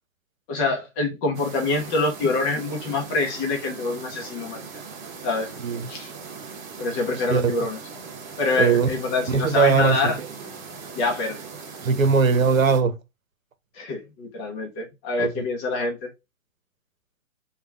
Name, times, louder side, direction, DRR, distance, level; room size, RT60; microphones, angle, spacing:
voice 1, 0.5-4.7 5.2-5.5 5.9-6.1 6.8-7.8 8.4-10.2 10.9-11.4 13.7-16.1, left 3 dB, 15° left, 0.5 m, -25 dB
sound 1, 1.3-12.8, right 5 dB, 35° right, 1.8 m, -40 dB
voice 2, 5.6-5.9 7.3-7.6 8.6-8.9 9.3-10.3 11.8-12.9 15.2-15.4, right 5 dB, 85° right, 0.9 m, -20 dB
3.4 x 2.3 x 3.3 m
hypercardioid pair, 135°, 39 cm